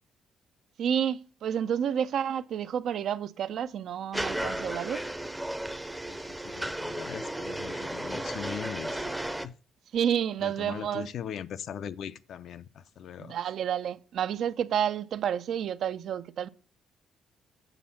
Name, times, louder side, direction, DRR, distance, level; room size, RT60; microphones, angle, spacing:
voice 1, 0.8-5.0 9.9-11.1 13.2-16.5, right 9 dB, 70° right, 0.6 m, -30 dB
sound 1, 4.1-9.5, right 1 dB, 5° right, 0.7 m, -34 dB
voice 2, 6.0-9.2 9.4-9.5 10.4-13.4, left 8 dB, 70° left, 0.7 m, -40 dB
7.9 x 7.0 x 4.2 m
cardioid pair, 90°, 0 cm